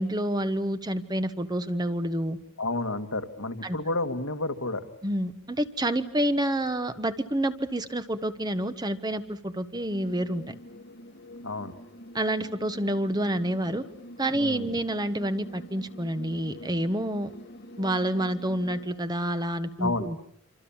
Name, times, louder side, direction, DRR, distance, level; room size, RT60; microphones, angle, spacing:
voice 1, 0.0-2.4 3.6-3.8 5.0-10.5 12.1-13.8 14.2-17.3 17.8-20.2, right 1 dB, 20° right, 11 dB, 1.2 m, -28 dB
voice 2, 2.6-4.9 11.4-11.7 14.3-14.8 19.8-20.1, left 2 dB, 75° left, 6 dB, 2.0 m, -31 dB
sound 1, 9.9-18.9, left 1 dB, 50° left, 1.5 m, -46 dB
27.0 x 26.5 x 7.3 m, 0.65 s
head